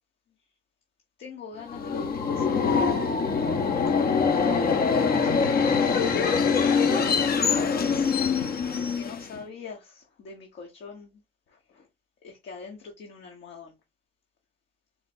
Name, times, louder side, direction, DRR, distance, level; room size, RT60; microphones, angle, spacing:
voice 1, 1.2-2.8 5.2-6.8 8.7-11.2 11.5-11.9 12.2-13.7, left 5 dB, 65° left, 1.2 m, -43 dB
Subway metro underground, 1.7-9.4, left 5 dB, 50° left, 0.8 m, -24 dB
4.3 x 2.2 x 4.2 m
cardioid pair, 90°, 20 cm